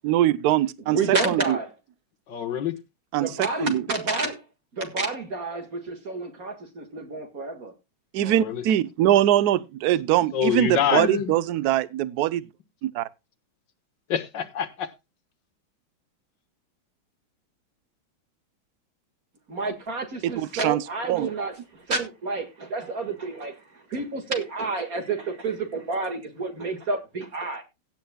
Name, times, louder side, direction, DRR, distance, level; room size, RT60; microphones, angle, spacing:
voice 1, 0.0-1.0 1.2-1.6 3.1-3.8 8.2-12.4 12.8-13.1 20.2-20.8 21.1-21.3, right 12 dB, 65° right, 1.0 m, -22 dB
voice 2, 0.9-1.7 3.2-4.4 4.7-7.7 19.5-23.5 23.9-27.6, right 3 dB, 45° right, 2.1 m, -29 dB
voice 3, 2.3-2.8 8.2-8.7 10.3-11.3 14.1-14.9, left 8 dB, 60° left, 1.8 m, -26 dB
16.5 x 10.5 x 2.2 m
omnidirectional pair, 2.3 m